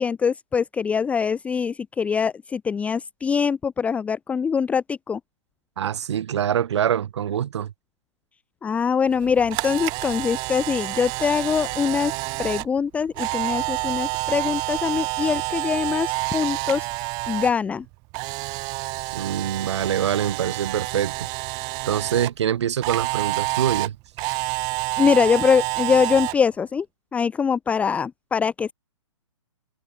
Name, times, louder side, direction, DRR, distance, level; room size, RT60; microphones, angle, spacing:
voice 1, 0.0-5.2 8.6-12.1 12.4-16.9 17.3-17.8 25.0-26.9 27.1-28.7, left 6 dB, 10° left, 1.0 m, -23 dB
voice 2, 5.8-7.7 19.1-21.3 21.9-24.0, right 9 dB, 60° right, 1.8 m, -24 dB
Camera, 9.2-17.5 17.8-22.3 22.8-26.3, right 27 dB, 25° right, 1.3 m, -28 dB
open air
hypercardioid pair, 155°, 16 cm